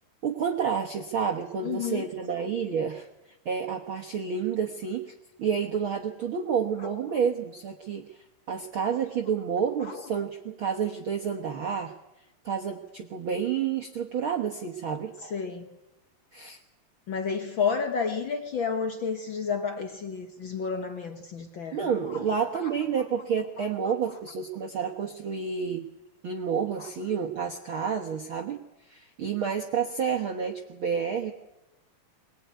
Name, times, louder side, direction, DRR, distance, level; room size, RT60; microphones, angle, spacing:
voice 1, 0.2-3.1 3.4-5.1 5.4-8.2 8.5-11.9 12.4-15.1 16.3-16.6 21.7-25.9 26.2-28.6 28.9-31.3, right 7 dB, 55° right, 1.5 m, -29 dB
voice 2, 1.6-2.1 6.8-7.2 9.8-10.1 15.2-15.7 17.1-22.3 22.6-22.7 23.6-23.9 26.8-26.9, left 6 dB, 65° left, 1.2 m, -31 dB
23.0 x 20.0 x 9.4 m
omnidirectional pair, 3.9 m